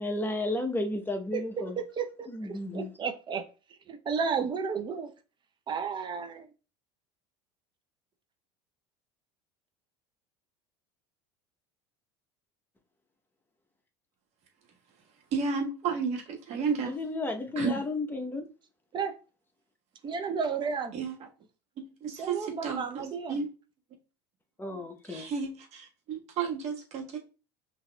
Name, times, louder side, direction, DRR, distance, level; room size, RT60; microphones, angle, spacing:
voice 1, 0.0-1.8 2.3-2.9 16.8-18.4 24.6-25.3, left 2 dB, 15° left, 0.9 m, -33 dB
voice 2, 1.3-3.4 3.9-5.1 5.7-6.5 18.9-19.1 20.0-21.0 22.2-23.4, right 6 dB, 35° right, 0.7 m, -33 dB
voice 3, 15.3-17.0 17.5-17.8 20.9-21.1 21.8-23.0 23.3-23.5 25.0-27.2, right 5 dB, 50° right, 1.5 m, -32 dB
5.8 x 2.8 x 2.3 m
hypercardioid pair, 85°, 14 cm